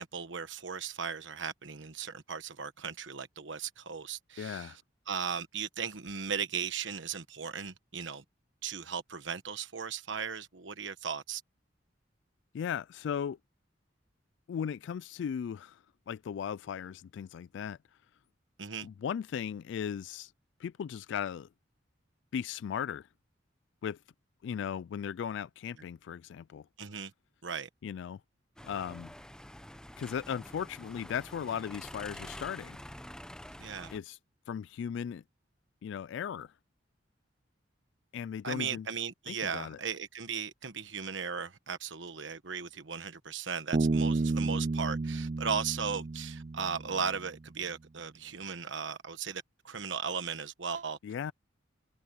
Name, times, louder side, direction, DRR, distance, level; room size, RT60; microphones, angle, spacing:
voice 1, 0.0-4.8 5.1-8.2 8.6-11.4 18.6-18.9 26.8-27.1 27.4-27.7 33.6-33.9 38.4-51.0, right 6 dB, 75° right, 1.2 m, -37 dB
voice 2, 4.4-4.8 12.5-13.4 14.5-17.8 18.8-20.3 20.6-21.5 22.3-23.1 23.8-24.0 24.4-26.7 27.8-28.2 28.6-29.1 30.0-32.8 33.9-34.2 34.5-35.2 35.8-36.5 38.1-38.9 39.3-39.8 51.0-51.3, left 8 dB, 70° left, 0.3 m, -37 dB
sound 1, 28.6-34.0, left 1 dB, 5° left, 0.7 m, -47 dB
Bass guitar, 43.7-47.3, right 3 dB, 35° right, 0.4 m, -31 dB
head